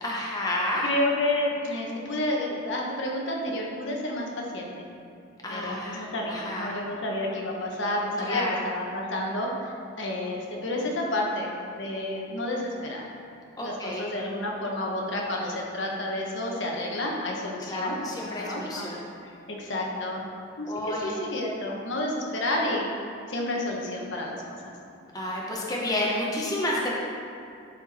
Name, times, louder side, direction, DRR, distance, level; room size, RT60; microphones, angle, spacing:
voice 1, 0.0-0.8 5.4-6.0 6.3-6.7 8.2-8.5 13.6-14.0 17.7-19.0 20.7-21.2 25.1-26.9, left 1 dB, 20° left, -4 dB, 0.9 m, -30 dB
voice 2, 0.8-4.9 5.5-9.5 10.0-13.1 13.6-18.0 18.3-18.9 19.5-20.2 20.6-22.9 23.3-24.7, left 1 dB, 65° left, -1 dB, 1.2 m, -30 dB
11.0 x 4.5 x 4.2 m, 2.5 s
head